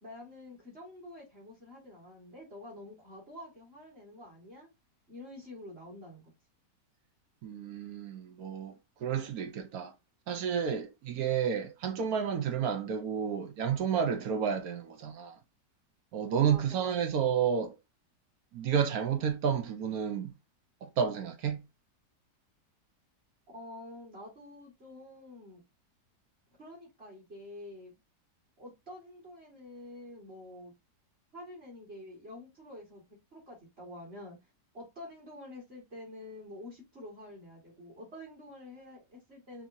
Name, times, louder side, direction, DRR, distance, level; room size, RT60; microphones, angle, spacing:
voice 1, 0.0-4.7 5.1-6.3 16.5-17.0 23.5-25.6 26.6-28.0 28.6-30.7 31.3-34.4 34.7-39.7, left 1 dB, 35° right, 2.0 m, -48 dB
voice 2, 7.4-8.7 9.0-9.9 10.3-15.4 16.1-17.7 18.5-20.3 20.8-21.6, right 7 dB, 70° right, 1.1 m, -31 dB
5.4 x 2.7 x 2.6 m
omnidirectional pair, 1.8 m